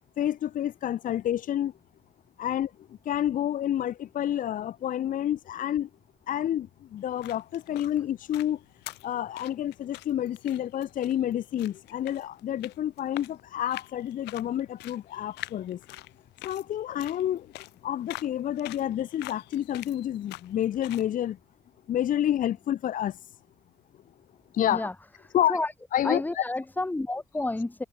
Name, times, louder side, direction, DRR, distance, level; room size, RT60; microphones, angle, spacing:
voice 1, 0.2-1.7 2.4-5.9 6.3-8.6 9.0-15.8 16.4-17.5 17.8-21.4 21.9-23.2 24.5-24.9 25.3-25.6 25.9-26.4, left 11 dB, 50° left, 1.0 m, -29 dB
sound 1, 7.0-21.1, left 19 dB, 85° left, 1.4 m, -46 dB
voice 2, 26.0-27.8, left 2 dB, 10° left, 1.5 m, -30 dB
cardioid pair, 110°, 17 cm